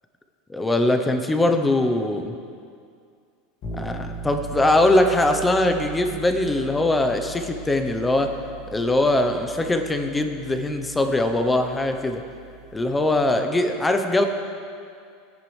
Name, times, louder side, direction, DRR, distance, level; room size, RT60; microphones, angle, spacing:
voice 1, 0.5-2.3 3.7-8.3 8.7-12.2 12.7-14.2, left 2 dB, 10° left, 6 dB, 0.7 m, -21 dB
sound 1, 3.6-13.4, right 4 dB, 35° left, 2.1 m, -39 dB
21.0 x 10.5 x 3.3 m, 2.3 s
supercardioid pair, 170°, 0 cm